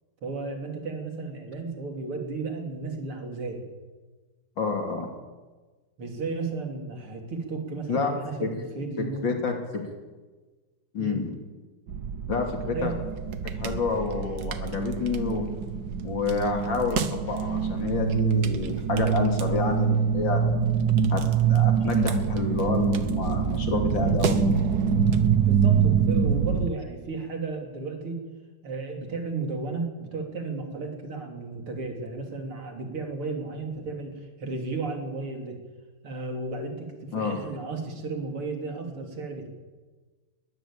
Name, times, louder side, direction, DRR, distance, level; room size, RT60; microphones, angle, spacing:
voice 1, 0.2-3.6 6.0-9.2 11.0-11.2 12.7-13.0 25.5-28.2 28.6-34.1 34.4-35.6 36.0-39.5, right 3 dB, 90° right, 3 dB, 4.0 m, -34 dB
voice 2, 4.6-5.1 7.9-8.1 8.4-8.5 9.0-9.8 10.9-11.3 12.3-12.9 13.6-15.4 16.0-20.4 21.1-24.6 37.1-37.4, left 4 dB, 60° left, 4 dB, 3.5 m, -28 dB
sound 1, 11.9-26.7, right 7 dB, 55° right, 1.5 m, -25 dB
21.0 x 14.0 x 8.9 m, 1.3 s
omnidirectional pair, 2.3 m